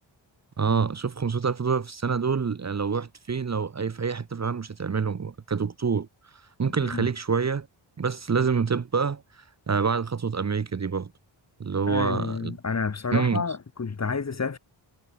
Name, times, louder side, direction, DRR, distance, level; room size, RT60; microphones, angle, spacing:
voice 1, 0.6-6.1 6.6-7.7 8.0-11.1 11.6-12.6 13.1-13.4, right 5 dB, 35° right, 1.0 m, -27 dB
voice 2, 11.9-14.6, left 5 dB, 35° left, 1.7 m, -29 dB
wide cardioid pair, 170°, 45 cm